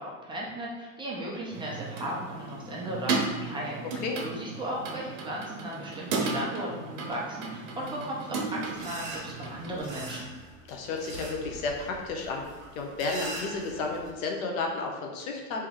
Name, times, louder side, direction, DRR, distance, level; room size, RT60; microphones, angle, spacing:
voice 1, 0.0-10.3, right 1 dB, 10° right, -4 dB, 0.4 m, -36 dB
sound 1, 1.5-10.2, right 3 dB, 65° right, 1.0 m, -35 dB
sound 2, 8.7-14.1, right 1 dB, 45° right, 1.2 m, -42 dB
voice 2, 10.7-12.5 12.7-15.7, left 3 dB, 90° left, 1 dB, 0.9 m, -32 dB
3.3 x 3.0 x 3.6 m, 1.2 s
supercardioid pair, 150°, 40 cm